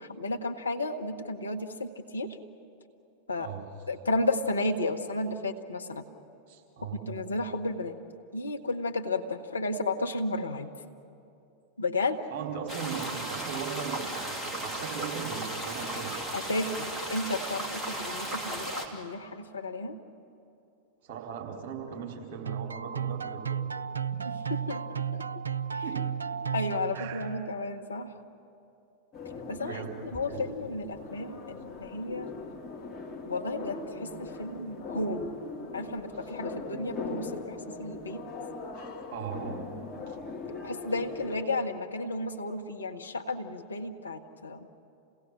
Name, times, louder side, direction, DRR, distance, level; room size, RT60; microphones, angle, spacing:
voice 1, 0.0-2.3 3.3-3.5 3.9-6.0 7.1-7.9 8.3-10.7 11.8-12.2 16.3-20.0 24.2-25.2 25.7-25.8 26.5-28.1 29.5-29.8 30.1-32.3 33.2-35.3 35.7-38.2 40.6-44.7, left 2 dB, 75° left, 5 dB, 1.2 m, -33 dB
voice 2, 6.5-7.1 12.3-14.4 14.6-16.1 21.0-23.6 24.1-24.3 25.8-26.0 26.9-27.3 29.6-29.9 30.3-30.4 38.8-39.8 40.1-40.2, right 7 dB, 45° right, -1 dB, 4.1 m, -38 dB
sound 1, 12.7-18.9, right 1 dB, 5° right, 2.6 m, -35 dB
sound 2, 22.5-27.6, right 7 dB, 75° right, 0.4 m, -34 dB
sound 3, 29.1-41.4, left 3 dB, 25° left, 2.6 m, -40 dB
28.0 x 17.0 x 7.4 m, 2.7 s
figure-of-eight pair, 90°, 0 cm